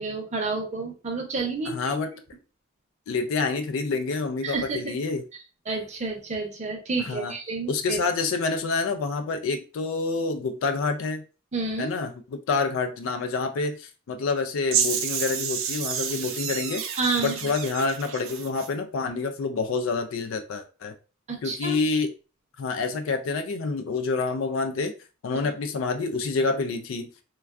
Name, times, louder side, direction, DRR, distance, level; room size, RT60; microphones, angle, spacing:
voice 1, 0.0-2.1 4.4-4.8 5.7-8.0 11.5-11.9 17.0-17.5 21.3-21.8 25.4-25.5, right 3 dB, 35° right, 2 dB, 0.7 m, -30 dB
voice 2, 1.7-2.1 3.1-5.2 7.0-7.3 7.7-11.2 11.8-16.8 17.2-20.9 21.4-22.1 22.6-24.9 25.2-27.1, left 4 dB, 75° left, 6 dB, 0.3 m, -27 dB
sound 1, 14.7-18.7, right 7 dB, 75° right, 0.5 m, -29 dB
3.3 x 2.3 x 2.3 m, 0.33 s
head